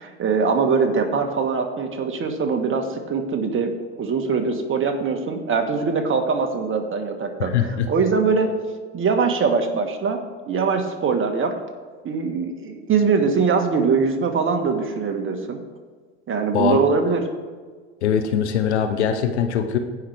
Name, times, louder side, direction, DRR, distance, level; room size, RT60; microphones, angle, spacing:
voice 1, 0.0-8.5 8.9-11.6 12.0-15.6 16.3-17.3, right 5 dB, 40° right, 5 dB, 1.7 m, -22 dB
voice 2, 7.5-7.9 16.5-16.8 18.0-19.8, left 8 dB, 85° left, 7 dB, 0.9 m, -21 dB
16.5 x 5.7 x 3.5 m, 1.5 s
hypercardioid pair, 75°, 33 cm